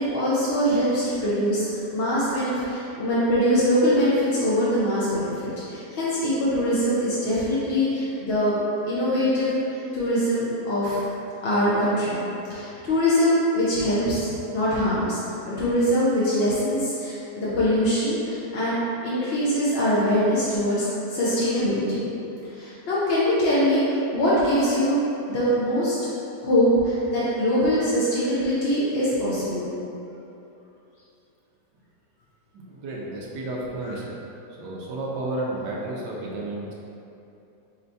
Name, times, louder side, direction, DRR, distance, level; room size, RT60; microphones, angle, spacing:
voice 1, 0.0-8.6 8.9-11.0 11.4-12.2 12.5-15.2 15.5-18.7 19.0-22.0 22.5-25.0 25.3-25.9 26.4-29.6, equal, 55° left, -9 dB, 0.7 m, -23 dB
voice 2, 32.5-34.2 34.6-36.7, right 2 dB, 85° right, -3 dB, 1.3 m, -32 dB
5.2 x 3.3 x 2.7 m, 2.9 s
omnidirectional pair, 1.8 m